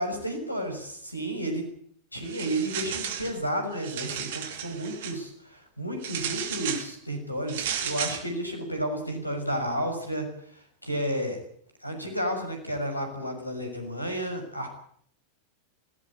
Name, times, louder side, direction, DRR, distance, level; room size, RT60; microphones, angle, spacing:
voice 1, 0.0-1.6 2.1-10.3 10.8-11.4 11.8-14.7, right 1 dB, 85° left, 5 dB, 6.6 m, -31 dB
sound 1, 2.2-3.3 3.7-5.2 6.0-6.9 7.5-8.2, right 9 dB, 55° right, 2.9 m, -33 dB
19.5 x 17.5 x 9.0 m, 0.62 s
figure-of-eight pair, 90°, 0 cm